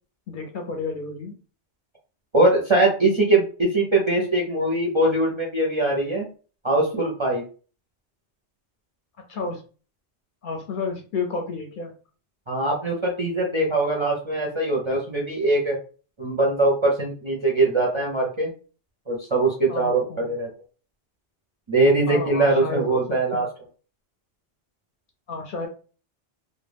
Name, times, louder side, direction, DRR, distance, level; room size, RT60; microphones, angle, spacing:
voice 1, 0.3-1.3 9.3-9.6 10.4-11.9 19.7-20.3 22.1-23.5 25.3-25.7, left 4 dB, 60° left, 2 dB, 0.6 m, -31 dB
voice 2, 2.3-6.3 6.6-7.4 12.5-15.8 16.2-18.5 19.1-20.5 21.7-23.5, right 2 dB, 40° right, -2 dB, 0.4 m, -22 dB
2.2 x 2.1 x 3.2 m, 0.37 s
omnidirectional pair, 1.2 m